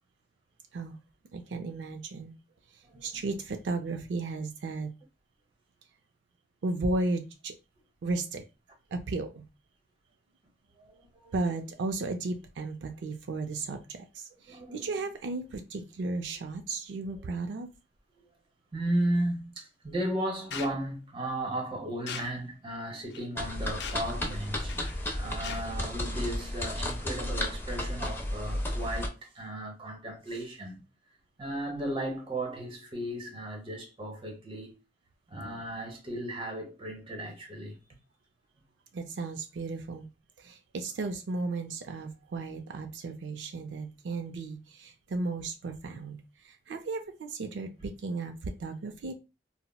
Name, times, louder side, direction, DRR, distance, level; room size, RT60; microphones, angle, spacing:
voice 1, 1.3-2.3 2.7-4.9 6.6-7.5 8.0-8.4 8.9-9.4 11.3-17.7 38.9-40.1 40.4-49.1, right 3 dB, 80° right, 0.4 m, -35 dB
voice 2, 10.9-11.3 14.5-14.9 17.2-17.3 18.7-30.8 31.4-34.8 35.3-37.8, right 1 dB, 30° right, 0.8 m, -35 dB
sound 1, 20.5-20.7 22.1-22.3 23.1-23.2 23.8-24.1 24.7-25.0 25.4-25.6, left 6 dB, 70° left, 0.4 m, -39 dB
sound 2, 23.4-29.1, left 1 dB, 15° left, 0.6 m, -33 dB
4.0 x 2.0 x 2.2 m
head